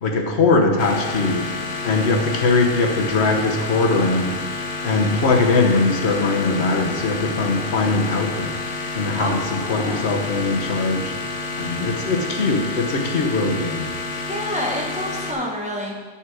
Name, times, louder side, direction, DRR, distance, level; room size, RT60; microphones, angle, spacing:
voice 1, 0.0-1.5 1.8-4.4 4.8-8.5 8.9-11.1 11.6-13.9, left 3 dB, 90° left, 2 dB, 1.3 m, -21 dB
sound 1, 0.8-15.3, left 3 dB, 60° left, 1.0 m, -29 dB
voice 2, 9.1-10.1 14.3-15.9, equal, 5° right, -3 dB, 1.2 m, -28 dB
8.7 x 6.2 x 4.8 m, 1.4 s
omnidirectional pair, 1.1 m